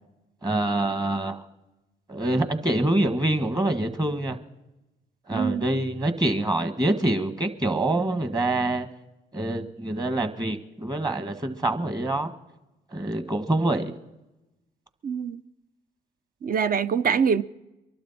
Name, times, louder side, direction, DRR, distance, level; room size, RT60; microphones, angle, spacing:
voice 1, 0.4-1.4 2.1-4.4 5.3-8.9 9.3-12.3 12.9-13.9, right 1 dB, 20° right, 1.6 m, -25 dB
voice 2, 5.3-5.7 15.0-15.4 16.4-17.4, right 6 dB, 45° right, 0.7 m, -24 dB
23.0 x 12.0 x 4.3 m
supercardioid pair, 60°, 20 cm